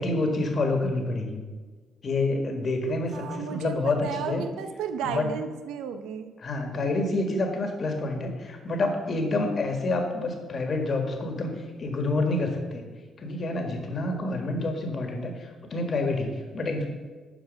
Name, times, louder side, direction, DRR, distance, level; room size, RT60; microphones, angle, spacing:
voice 1, 0.0-1.4 2.0-4.4 5.0-5.3 6.4-12.9 13.2-16.9, left 2 dB, 45° left, 4 dB, 1.7 m, -28 dB
voice 2, 3.1-6.3, right 7 dB, 90° right, 9 dB, 0.7 m, -33 dB
12.0 x 4.6 x 5.3 m, 1.4 s
cardioid pair, 90°, 0 cm